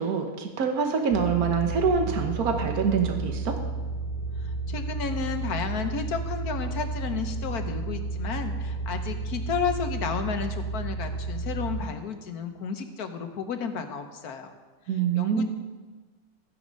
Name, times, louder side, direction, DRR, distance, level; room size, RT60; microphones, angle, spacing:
voice 1, 0.0-3.6 14.9-15.5, right 6 dB, 75° right, 5 dB, 1.6 m, -25 dB
sound 1, 1.1-11.8, right 3 dB, 70° left, 1.3 m, -32 dB
voice 2, 4.4-14.5 15.2-15.5, left 6 dB, 85° left, 7 dB, 1.6 m, -32 dB
14.5 x 9.6 x 5.3 m, 1.3 s
omnidirectional pair, 1.6 m